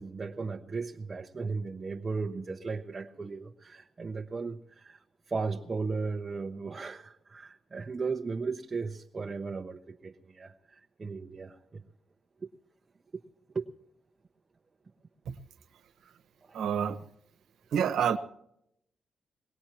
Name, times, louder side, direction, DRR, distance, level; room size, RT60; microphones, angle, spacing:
voice 1, 0.0-11.8 13.1-13.2 13.5-13.7 16.4-16.6, right 4 dB, 25° right, 2 dB, 0.7 m, -36 dB
voice 2, 16.5-17.0 17.7-18.2, right 8 dB, 90° right, 10 dB, 1.0 m, -27 dB
22.5 x 18.0 x 2.9 m, 0.78 s
wide cardioid pair, 175°, 0 cm